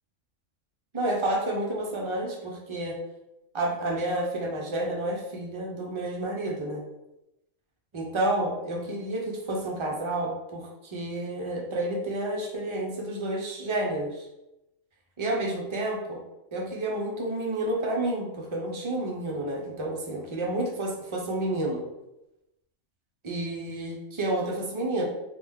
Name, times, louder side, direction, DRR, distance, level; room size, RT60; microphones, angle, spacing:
voice 1, 0.9-3.0 3.5-6.8 7.9-14.3 15.2-16.2 16.5-21.8 23.2-25.0, right 1 dB, 40° right, -1 dB, 0.4 m, -30 dB
3.2 x 2.3 x 3.5 m, 0.91 s
omnidirectional pair, 1.3 m